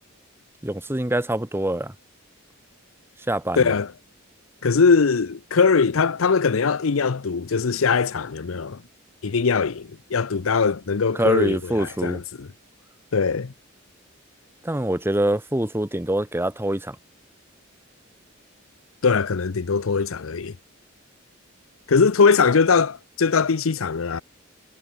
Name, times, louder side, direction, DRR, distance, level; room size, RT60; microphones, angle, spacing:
voice 1, 0.6-1.9 3.3-3.7 11.1-12.2 14.6-17.0, right 1 dB, 10° right, 1.2 m, -24 dB
voice 2, 3.6-3.9 4.6-8.8 9.2-12.5 13.1-13.5 19.0-20.5 21.9-24.2, left 5 dB, 80° left, 0.7 m, -21 dB
head